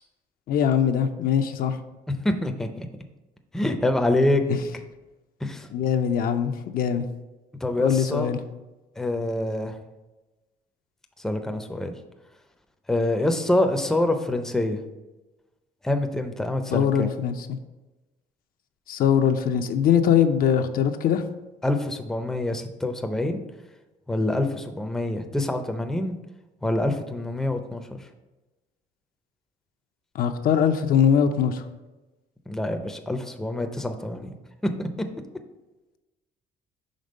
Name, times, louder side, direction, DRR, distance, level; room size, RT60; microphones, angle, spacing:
voice 1, 0.5-1.8 4.5-4.6 5.7-7.1 7.8-8.4 16.7-17.3 18.9-21.2 30.1-31.6, left 8 dB, 60° left, 8 dB, 0.5 m, -22 dB
voice 2, 2.1-2.9 3.5-4.4 5.4-5.7 7.6-8.3 9.0-9.8 11.2-11.9 12.9-14.8 15.8-17.1 21.6-23.4 24.1-26.2 26.6-28.0 32.5-34.3 34.8-34.9, left 1 dB, 5° left, 6 dB, 0.5 m, -26 dB
5.2 x 3.6 x 5.2 m, 1.1 s
cardioid pair, 110°, 17 cm